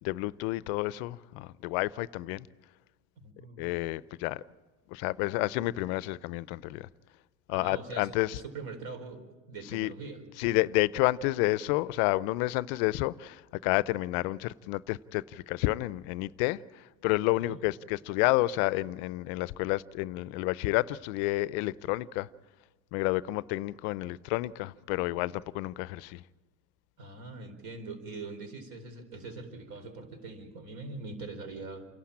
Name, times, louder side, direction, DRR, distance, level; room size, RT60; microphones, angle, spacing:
voice 1, 0.0-2.5 3.6-4.4 4.9-6.9 7.5-8.4 9.7-9.9 10.4-22.3 22.9-26.2, left 19 dB, 70° left, 0.6 m, -30 dB
voice 2, 3.2-3.7 7.5-10.2 17.4-17.6 27.0-31.9, right 3 dB, 50° right, 4.4 m, -42 dB
28.0 x 11.5 x 8.6 m
supercardioid pair, 125°, 46 cm